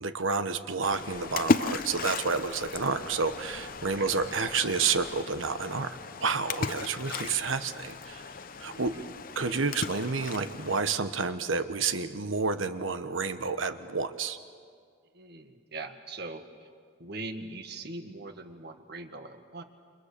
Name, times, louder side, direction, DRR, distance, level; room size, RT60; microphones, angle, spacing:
voice 1, 0.0-8.2 8.6-8.9 9.3-14.4, right 4 dB, 85° right, 10 dB, 1.2 m, -30 dB
Splash splatter, 0.8-10.8, left 3 dB, 45° left, 0.8 m, -35 dB
voice 2, 8.7-9.1 15.1-16.7 17.0-19.6, right 2 dB, 55° right, 6 dB, 1.8 m, -41 dB
29.5 x 28.0 x 6.8 m, 2.1 s
head